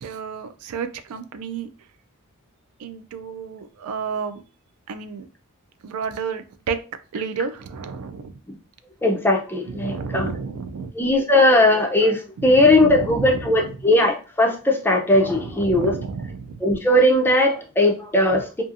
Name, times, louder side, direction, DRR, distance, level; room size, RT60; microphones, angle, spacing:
voice 1, 0.0-1.7 2.8-4.4 4.9-5.3 5.8-6.8 7.1-8.4 9.6-10.9 12.4-13.8 15.1-16.6 18.3-18.4, right 5 dB, 70° right, 0.3 m, -31 dB
voice 2, 9.0-10.3 10.9-16.0 16.6-18.6, left 1 dB, 10° left, 0.4 m, -18 dB
2.6 x 2.4 x 2.4 m
head